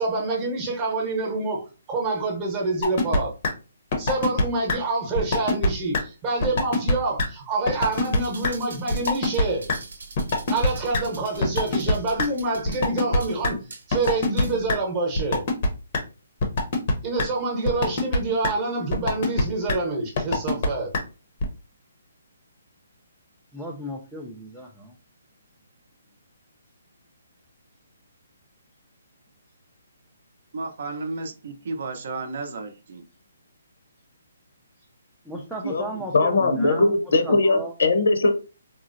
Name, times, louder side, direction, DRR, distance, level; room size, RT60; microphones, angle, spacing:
voice 1, 0.0-3.3 4.0-9.7 10.5-13.6 13.9-15.4 17.0-20.9, right 3 dB, 20° right, 0.8 m, -27 dB
sound 1, 2.8-3.2 3.4-3.5 3.9-4.4 4.7-4.8 5.2-5.7 5.9-6.0 6.4-6.9 7.2-7.3 7.7-8.2 8.4-8.5 8.9-9.4 9.7-9.8 10.2-11.0 11.4-12.3 12.7-13.5 13.9-14.4 14.7-14.8 15.2-15.7 15.9-16.0 16.4-16.9 17.2-17.3 17.7-18.2 18.4-18.5 18.9-19.4 19.7-19.8 20.2-20.7 20.9-21.0 21.4-21.5, left 2 dB, 35° left, 0.6 m, -21 dB
sound 2, 7.7-14.7 15.2-15.3, right 3 dB, 85° right, 0.9 m, -42 dB
voice 2, 23.5-24.9 35.3-36.9 37.2-37.7, right 1 dB, ahead, 0.3 m, -35 dB
voice 3, 30.5-33.1, right 3 dB, 55° right, 0.5 m, -33 dB
voice 4, 35.6-38.3, left 3 dB, 70° left, 0.7 m, -20 dB
3.7 x 2.0 x 2.5 m
hypercardioid pair, 165°, 0 cm